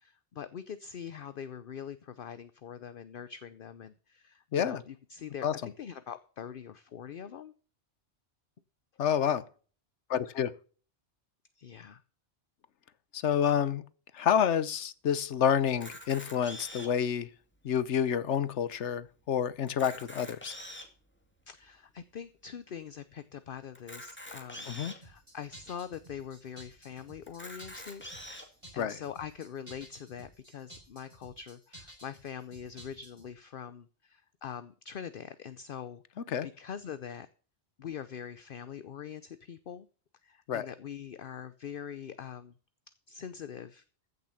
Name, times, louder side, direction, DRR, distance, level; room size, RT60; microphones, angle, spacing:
voice 1, 0.0-7.5 11.6-12.0 21.5-28.0 28.7-36.0 36.4-37.3 37.8-39.9 40.2-42.5 43.1-43.8, left 8 dB, 55° left, 0.8 m, -43 dB
voice 2, 9.0-9.4 10.1-10.5 13.1-13.8 14.1-17.3 17.6-20.5 24.7-24.9 28.8-29.0 36.3-36.5 40.5-40.7, left 8 dB, 85° left, 1.2 m, -28 dB
Camera, 15.7-17.1 17.7-17.8 18.0-18.2 18.7-18.8 19.6-21.0 21.6-21.7 23.7-25.0 25.7-25.8 26.1-26.2 27.3-28.4, left 1 dB, 10° left, 2.2 m, -45 dB
sound 1, 25.0-33.3, right 1 dB, 25° right, 6.8 m, -53 dB
15.0 x 6.8 x 5.7 m
omnidirectional pair, 1.2 m